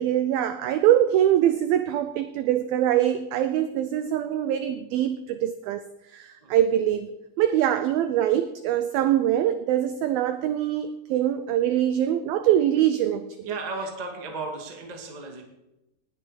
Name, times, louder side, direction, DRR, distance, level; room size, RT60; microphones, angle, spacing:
voice 1, 0.0-13.6, right 11 dB, 85° right, 11 dB, 2.1 m, -23 dB
voice 2, 13.4-15.4, right 3 dB, 35° right, 2 dB, 0.6 m, -35 dB
19.0 x 9.7 x 5.2 m, 0.95 s
omnidirectional pair, 5.1 m